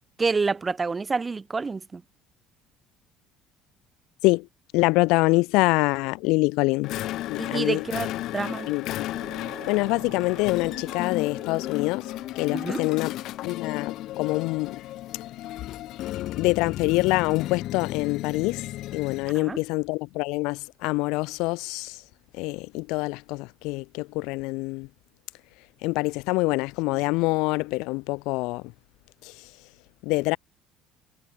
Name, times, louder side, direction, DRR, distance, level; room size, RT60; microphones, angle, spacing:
voice 1, 0.2-2.0 7.4-8.7 12.5-12.8 19.4-19.6, right 4 dB, 25° right, 0.9 m, -28 dB
voice 2, 4.7-6.9 7.3-7.8 8.7-9.1 9.4-12.1 12.3-13.1 13.4-14.8 16.4-18.6 18.9-22.0 22.4-24.9 25.8-28.6 29.2-29.3 30.0-30.4, left 24 dB, 80° left, 1.6 m, -25 dB
sound 1, 6.8-19.4, left 15 dB, 65° left, 0.9 m, -34 dB
sound 2, 9.1-14.4, right 23 dB, 80° right, 4.7 m, -49 dB
cardioid pair, 105°, 0 cm